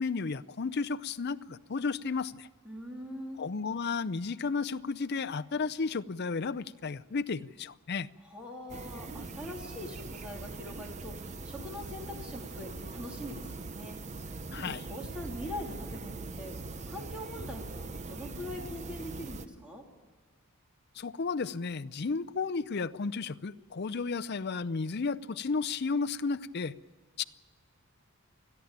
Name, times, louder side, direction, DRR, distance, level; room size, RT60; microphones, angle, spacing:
voice 1, 0.0-2.5 3.4-8.1 14.5-14.8 21.0-26.7 27.2-27.3, left 4 dB, 50° left, 11 dB, 0.6 m, -33 dB
voice 2, 2.6-3.4 8.2-14.3 14.6-16.6 16.9-19.8, left 1 dB, 5° right, 0 dB, 3.2 m, -43 dB
sound 1, 8.7-19.5, right 3 dB, 35° right, 0.7 m, -41 dB
29.0 x 10.5 x 8.8 m, 1.5 s
head